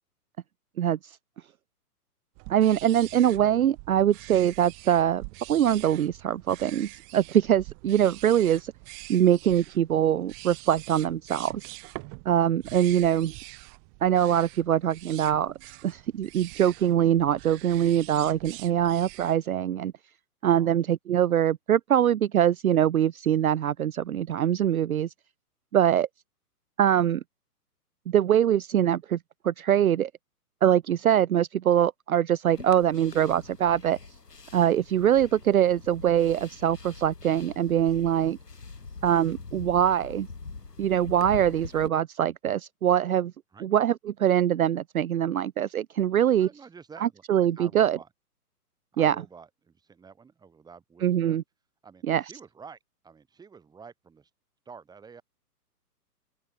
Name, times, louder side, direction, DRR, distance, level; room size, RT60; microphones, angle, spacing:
sound 1, 2.4-19.4, right 40 dB or more, 30° right, 6.6 m, -45 dB
voice 1, 2.5-5.2 5.5-8.7 9.1-11.7 12.3-13.3 14.0-15.5 15.8-19.9 20.4-25.1 25.7-26.1 26.8-27.2 28.1-29.2 29.4-30.1 30.6-34.0 34.5-38.4 39.0-40.3 40.8-43.3 43.6-46.5 47.0-48.0 49.0-49.2 51.0-51.4 52.1-52.2, right 10 dB, 65° right, 0.6 m, -23 dB
sound 2, 32.5-41.9, left 4 dB, 85° left, 1.9 m, -43 dB
voice 2, 46.4-48.1 48.9-51.4 51.8-54.3 54.6-55.2, right 5 dB, 10° right, 3.3 m, -49 dB
open air
figure-of-eight pair, 125°, 47 cm